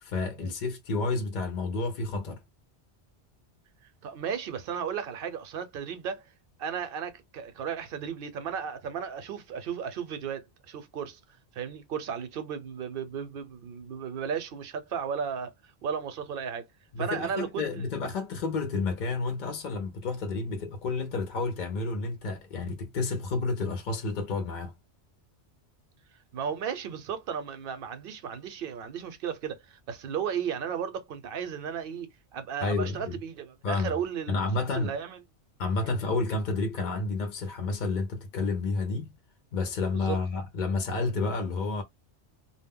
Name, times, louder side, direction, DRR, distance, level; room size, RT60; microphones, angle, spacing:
voice 1, 0.0-2.4 16.9-24.7 32.6-33.2 33.6-34.0 34.3-34.9 35.6-39.1 39.5-41.8, left 3 dB, 55° left, 0.6 m, -30 dB
voice 2, 4.0-6.2 6.6-11.2 11.5-16.7 17.0-17.8 26.3-34.5 34.8-35.2 35.8-35.9 39.9-40.2, right 7 dB, 60° right, 0.7 m, -35 dB
2.1 x 2.1 x 3.5 m
omnidirectional pair, 1.2 m